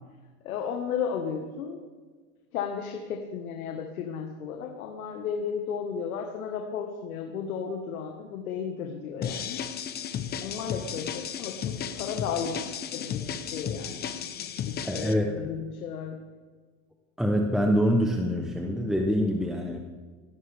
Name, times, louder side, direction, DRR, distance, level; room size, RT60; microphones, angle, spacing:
voice 1, 0.4-1.8 2.5-9.6 10.4-12.7 12.9-14.1 14.6-16.2, left 7 dB, 85° left, 3 dB, 1.8 m, -34 dB
sound 1, 9.2-15.1, left 8 dB, 25° left, 0.9 m, -34 dB
voice 2, 14.8-15.5 17.2-19.8, equal, ahead, 2 dB, 1.0 m, -25 dB
17.5 x 15.5 x 3.6 m, 1.4 s
supercardioid pair, 140°, 42 cm